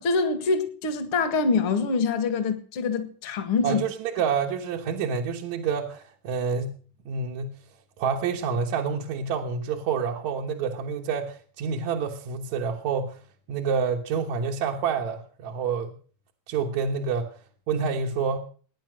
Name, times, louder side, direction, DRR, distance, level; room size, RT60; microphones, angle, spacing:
voice 1, 0.0-3.8, left 4 dB, 50° left, 2.4 m, -25 dB
voice 2, 3.6-6.8 7.1-7.6 8.0-13.2 13.5-15.9 16.5-17.3 17.7-18.4, right 6 dB, 65° right, 2.5 m, -28 dB
20.0 x 10.0 x 6.2 m
omnidirectional pair, 3.6 m